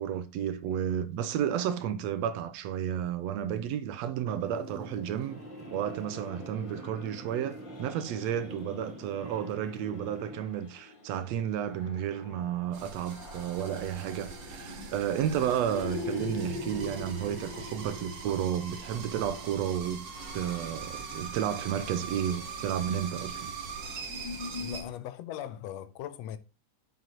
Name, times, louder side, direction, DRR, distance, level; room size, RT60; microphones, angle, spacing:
voice 1, 0.0-5.4 5.7-20.0 20.3-23.5, right 9 dB, 75° right, 1.7 m, -32 dB
sound 1, 4.3-10.4, right 1 dB, ahead, 2.4 m, -45 dB
sound 2, 5.2-25.0, left 3 dB, 40° left, 2.8 m, -45 dB
sound 3, 12.7-24.8, right 5 dB, 60° right, 0.9 m, -42 dB
voice 2, 24.5-26.4, left 11 dB, 75° left, 1.6 m, -39 dB
9.2 x 7.1 x 3.0 m
omnidirectional pair, 3.4 m